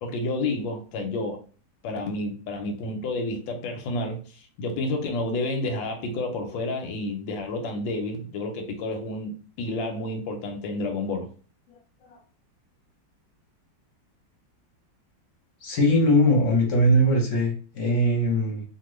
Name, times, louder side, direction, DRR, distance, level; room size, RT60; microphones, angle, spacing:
voice 1, 0.0-1.4 1.8-11.3, left 2 dB, 90° left, 3 dB, 1.3 m, -30 dB
voice 2, 15.6-18.6, equal, 55° left, 0 dB, 0.9 m, -21 dB
2.9 x 2.4 x 3.0 m, 0.38 s
omnidirectional pair, 2.0 m